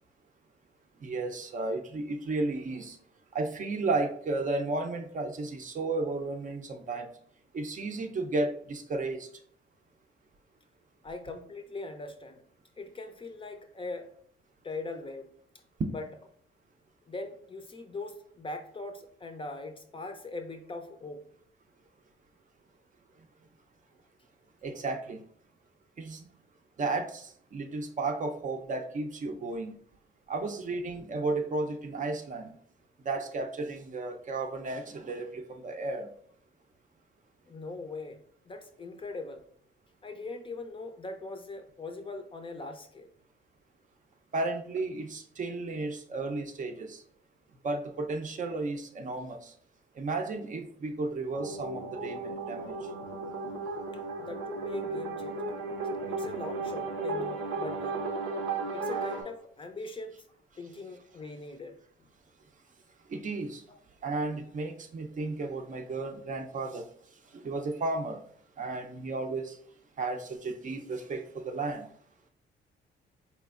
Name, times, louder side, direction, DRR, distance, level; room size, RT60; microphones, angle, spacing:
voice 1, 1.0-3.0 3.3-7.1 7.5-9.3 15.8-15.9 24.6-25.2 26.0-26.2 26.8-29.7 30.3-32.5 33.1-36.1 44.3-47.0 47.6-49.5 50.0-52.7 63.1-63.6 64.0-66.8 67.3-68.2 68.6-69.6 70.0-71.9, right 3 dB, 40° right, 4 dB, 0.5 m, -33 dB
voice 2, 11.0-12.4 12.8-14.1 14.6-15.3 15.9-16.0 17.1-21.2 37.5-38.2 38.5-39.4 40.0-43.1 54.2-55.5 56.1-58.0 58.7-60.2 60.6-61.8 63.7-63.8, left 3 dB, 25° left, 5 dB, 0.5 m, -41 dB
sound 1, 51.3-59.2, right 3 dB, 90° right, 0.7 m, -35 dB
4.2 x 3.0 x 2.4 m, 0.63 s
cardioid pair, 90°, 20 cm